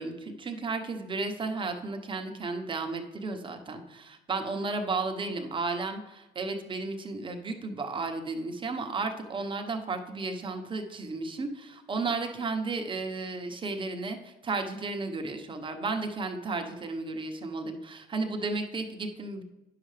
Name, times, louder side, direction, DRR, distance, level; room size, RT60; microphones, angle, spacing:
voice 1, 0.0-19.4, right 3 dB, 30° right, 4 dB, 1.0 m, -33 dB
9.8 x 6.7 x 3.3 m, 1.0 s
cardioid pair, 110°, 17 cm